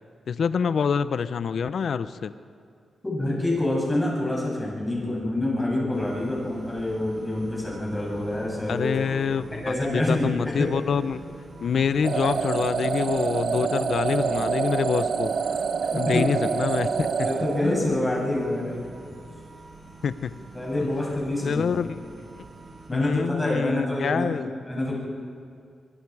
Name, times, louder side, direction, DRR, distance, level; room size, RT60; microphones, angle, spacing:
voice 1, 0.3-2.3 8.7-11.2 11.6-15.6 15.9-17.3 17.6-17.9 20.0-20.3 21.4-22.0 22.9-24.5, left 6 dB, 70° left, 13 dB, 0.7 m, -26 dB
voice 2, 3.0-10.7 17.2-18.7 20.5-21.7 22.9-24.9, left 1 dB, 15° left, -4 dB, 8.0 m, -27 dB
sound 1, 5.9-22.9, right 2 dB, 45° right, 4.3 m, -46 dB
sound 2, 12.0-18.2, right 6 dB, 65° right, 0.8 m, -27 dB
25.0 x 23.0 x 4.9 m, 2.2 s
wide cardioid pair, 105°, 0 cm